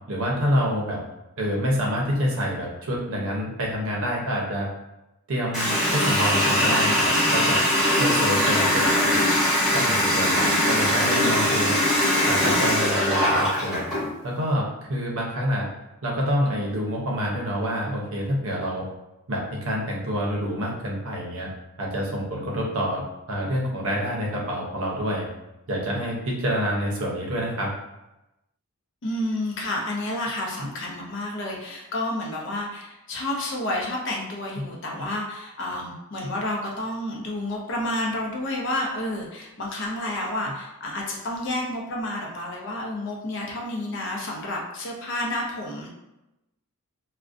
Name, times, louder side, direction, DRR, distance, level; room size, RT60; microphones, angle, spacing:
voice 1, 0.1-1.0 1.4-4.7 5.3-7.6 7.9-9.1 9.7-11.7 12.3-13.8 14.2-15.7 16.0-18.8 19.3-21.5 21.8-25.3 25.7-27.7 30.6-30.7 34.6-34.7 36.2-36.3, equal, 65° right, -2 dB, 0.6 m, -27 dB
Water tap faucet, 5.5-14.1, left 1 dB, 5° right, 1.1 m, -21 dB
voice 2, 10.1-10.9 29.0-45.9, left 1 dB, 55° left, -1 dB, 0.5 m, -30 dB
2.4 x 2.1 x 2.4 m, 0.94 s
head